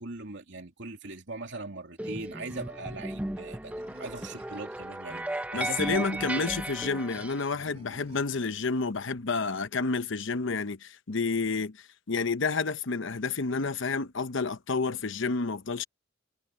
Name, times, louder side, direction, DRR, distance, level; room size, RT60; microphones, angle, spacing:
voice 1, 0.0-3.7 4.0-6.5, right 2 dB, 65° right, 3.0 m, -40 dB
sound 1, 2.0-7.5, right 1 dB, 5° right, 0.8 m, -36 dB
Animal, 3.8-4.9 5.7-6.7 7.5-8.5, right 1 dB, 30° right, 3.5 m, -52 dB
voice 2, 5.5-15.8, left 4 dB, 65° left, 0.9 m, -30 dB
head